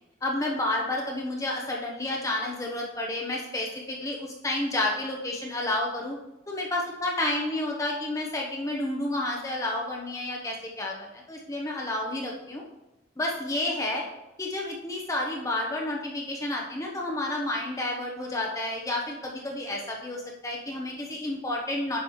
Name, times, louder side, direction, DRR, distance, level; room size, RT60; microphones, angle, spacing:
voice 1, 0.2-6.2 6.5-12.6 13.2-14.0 14.4-22.0, left 1 dB, 20° left, -1 dB, 0.8 m, -30 dB
9.5 x 6.0 x 3.1 m, 0.98 s
head